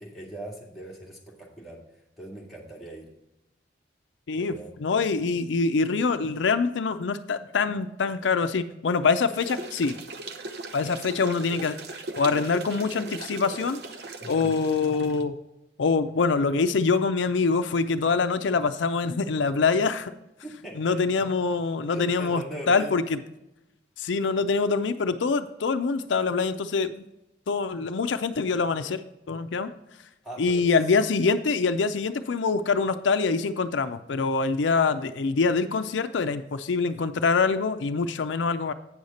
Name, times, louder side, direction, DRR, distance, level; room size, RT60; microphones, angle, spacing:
voice 1, 0.0-1.8 2.2-3.1 4.4-4.7 14.2-14.6 20.4-21.3 21.9-22.9 30.2-30.7, right 1 dB, ahead, -5 dB, 1.9 m, -40 dB
voice 2, 4.8-10.0 10.7-11.8 12.2-13.8 14.3-15.3 15.8-20.1 20.8-23.2 24.0-27.0 27.5-29.0 29.3-29.7 30.4-38.7, left 4 dB, 80° left, 10 dB, 0.5 m, -25 dB
sound 1, 9.3-15.2, right 3 dB, 60° right, 0.7 m, -39 dB
8.6 x 6.5 x 4.1 m, 0.89 s
head